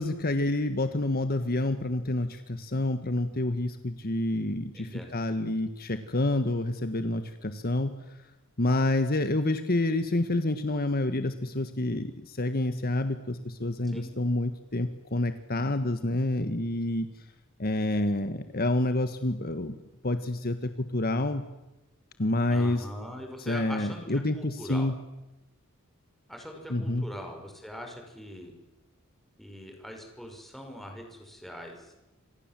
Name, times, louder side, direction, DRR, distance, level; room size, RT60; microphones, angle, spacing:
voice 1, 0.0-8.1 8.6-17.1 17.6-19.8 20.0-21.4 22.2-22.8 23.5-24.9 26.7-27.1, left 2 dB, 45° left, 9 dB, 1.5 m, -28 dB
voice 2, 4.7-5.1 13.8-14.1 22.5-24.1 24.3-24.9 26.3-28.5 29.4-31.9, equal, ahead, 2 dB, 5.9 m, -42 dB
28.0 x 26.5 x 7.7 m, 0.98 s
head